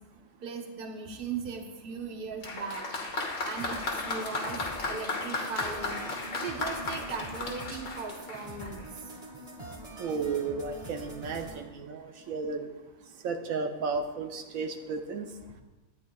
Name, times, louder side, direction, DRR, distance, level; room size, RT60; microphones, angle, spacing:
voice 1, 0.4-2.9 3.4-6.0 6.4-8.9, right 5 dB, 45° right, 3 dB, 1.1 m, -38 dB
Applause, 2.4-8.9, left 3 dB, 85° left, 1.7 m, -35 dB
sound 1, 3.6-11.6, right 2 dB, 30° right, 1.3 m, -44 dB
voice 2, 10.0-12.7 13.2-15.3, right 4 dB, 80° right, 5 dB, 1.1 m, -33 dB
13.0 x 9.5 x 2.3 m, 1.1 s
omnidirectional pair, 1.4 m